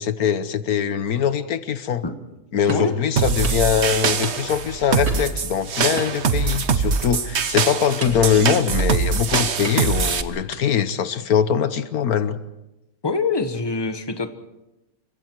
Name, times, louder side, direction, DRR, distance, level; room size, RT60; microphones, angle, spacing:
voice 1, 0.0-2.0 2.5-12.4, left 8 dB, 85° left, 12 dB, 1.5 m, -22 dB
sound 1, 2.7-3.0 3.4-3.7 4.2-4.7 5.1-5.4 6.0-6.7 7.1-7.3 8.0-8.3 8.8-9.2 9.6-10.0 10.5-10.8, right 2 dB, 85° right, 3.0 m, -33 dB
sound 2, 3.2-10.2, right 5 dB, 50° right, 1.3 m, -23 dB
voice 2, 13.0-14.3, left 3 dB, 15° left, 8 dB, 1.4 m, -24 dB
29.0 x 24.5 x 4.7 m, 0.95 s
omnidirectional pair, 1.5 m